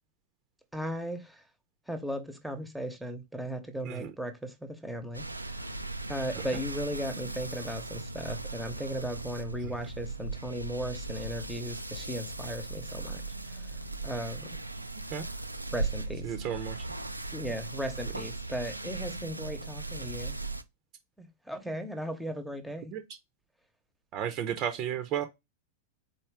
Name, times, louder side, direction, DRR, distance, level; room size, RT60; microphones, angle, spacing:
voice 1, 0.7-1.4 1.9-5.7 6.1-13.2 13.5-13.7 14.0-14.6 15.7-16.6 17.3-20.4 21.2-22.9, equal, ahead, 1.0 m, -37 dB
sound 1, 5.1-20.6, right 3 dB, 85° right, 0.4 m, -38 dB
voice 2, 16.2-16.7 22.9-23.0 24.1-25.2, right 9 dB, 35° right, 0.7 m, -33 dB
4.3 x 3.1 x 3.4 m
figure-of-eight pair, 90°, 0 cm